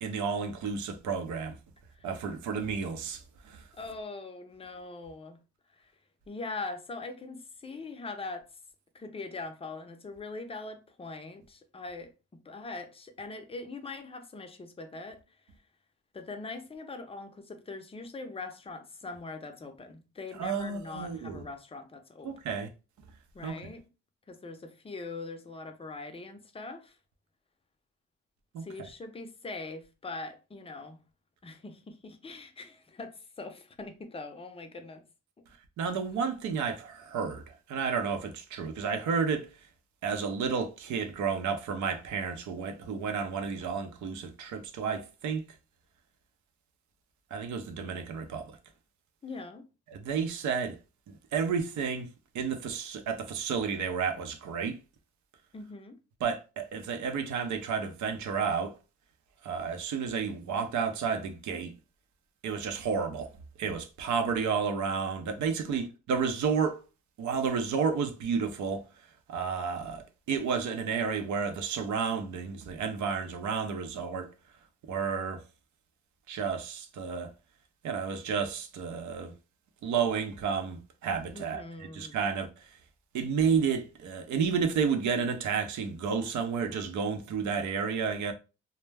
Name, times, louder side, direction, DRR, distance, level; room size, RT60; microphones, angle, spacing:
voice 1, 0.0-1.5 2.0-3.6 20.4-21.4 22.2-22.7 23.4-23.6 28.5-28.6 35.8-39.5 40.0-45.4 47.3-48.6 49.9-50.8 51.1-52.1 52.3-54.8 56.2-58.7 59.4-61.7 62.4-63.3 63.6-66.8 67.2-68.8 69.3-74.3 74.9-75.4 76.3-77.3 77.8-79.3 79.8-82.8 83.1-88.3, right 6 dB, 70° right, 0.6 m, -31 dB
voice 2, 3.7-5.4 5.7-5.9 6.3-8.5 8.9-12.1 12.4-15.2 16.1-22.3 23.3-23.8 24.3-27.0 28.6-31.0 31.4-35.0 49.2-49.7 55.5-56.0 65.6-65.9 81.3-82.2, left 3 dB, 20° left, 0.5 m, -42 dB
2.2 x 2.1 x 3.2 m
cardioid pair, 90°, 30 cm